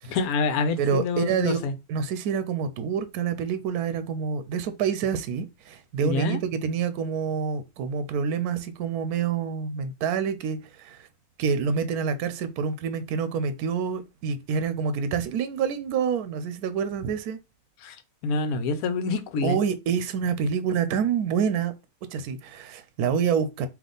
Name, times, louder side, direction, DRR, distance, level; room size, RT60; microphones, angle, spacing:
voice 1, 0.0-1.7 6.0-6.4 17.8-18.0 18.2-19.6, left 4 dB, 75° left, 1.1 m, -27 dB
voice 2, 0.8-1.6 1.9-11.1 11.4-17.4 19.4-21.7 22.1-23.7, right 6 dB, 80° right, 1.1 m, -27 dB
3.5 x 2.8 x 3.8 m
omnidirectional pair, 1.6 m